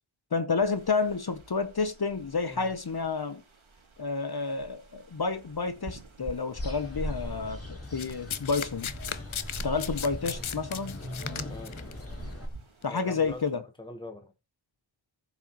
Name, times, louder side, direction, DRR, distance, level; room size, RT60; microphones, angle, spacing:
voice 1, 0.3-3.4 4.0-8.9 9.6-11.0 12.8-13.6, left 4 dB, 55° left, 0.8 m, -30 dB
sound 1, 0.6-13.4, right 3 dB, 80° right, 1.8 m, -50 dB
sound 2, 6.6-12.5, left 1 dB, 30° left, 2.8 m, -39 dB
Domestic sounds home sounds, 8.0-11.9 12.8-13.0, left 8 dB, 85° left, 0.7 m, -36 dB
voice 2, 11.5-11.8 12.9-14.3, left 2 dB, 10° left, 1.1 m, -43 dB
14.5 x 7.3 x 3.0 m
wide cardioid pair, 50°, 47 cm